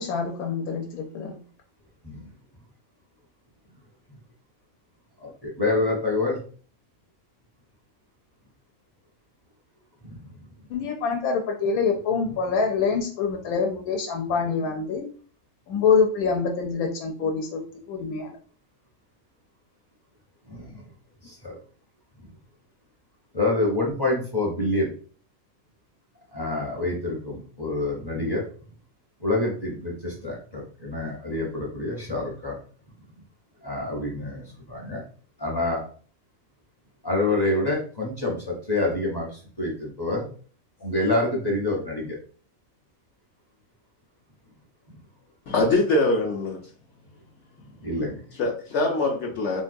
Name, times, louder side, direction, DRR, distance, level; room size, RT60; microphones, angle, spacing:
voice 1, 0.0-1.4 10.7-15.1 15.7-17.6 17.9-18.3, left 5 dB, 85° left, 2 dB, 1.0 m, -25 dB
voice 2, 5.2-6.4 10.0-10.2 20.5-20.8 21.2-21.6 22.2-22.3 23.3-24.9 26.3-28.4 29.2-32.6 33.6-35.0 35.4-35.8 37.0-40.2 40.8-42.2 44.9-45.0 47.8-48.2, left 2 dB, 25° left, -3 dB, 0.5 m, -27 dB
voice 3, 45.5-46.6 48.4-49.6, left 2 dB, 65° left, 0 dB, 0.7 m, -23 dB
3.8 x 2.2 x 2.5 m, 0.43 s
omnidirectional pair, 1.5 m